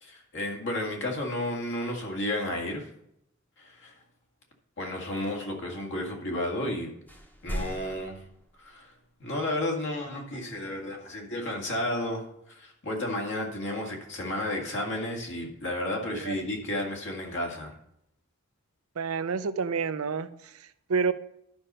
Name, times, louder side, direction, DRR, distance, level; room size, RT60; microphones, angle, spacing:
voice 1, 0.0-2.8 3.6-3.9 4.8-6.9 7.4-8.2 8.6-8.9 9.2-12.2 12.5-17.7, left 1 dB, 60° left, 1 dB, 2.1 m, -32 dB
sound 1, 6.6-6.8 7.1-9.1, equal, 10° left, 1.0 m, -39 dB
voice 2, 19.0-21.1, right 5 dB, 80° right, 13 dB, 0.6 m, -29 dB
11.5 x 5.5 x 5.5 m, 0.78 s
head